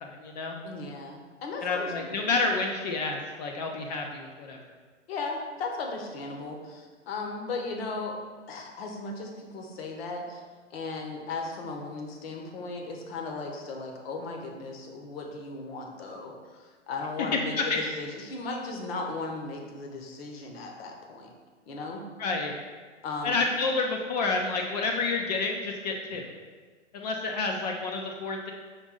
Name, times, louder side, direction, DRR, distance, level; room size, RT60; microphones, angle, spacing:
voice 1, 0.0-0.5 1.6-4.6 17.6-17.8 22.2-22.6 23.2-26.3 26.9-28.5, left 3 dB, 35° left, 2 dB, 0.4 m, -29 dB
voice 2, 0.6-2.3 5.1-8.2 8.5-10.4 10.7-21.3 21.7-22.0 23.0-23.4, left 3 dB, 55° left, 2 dB, 0.9 m, -36 dB
5.0 x 2.6 x 3.7 m, 1.5 s
figure-of-eight pair, 110°, 37 cm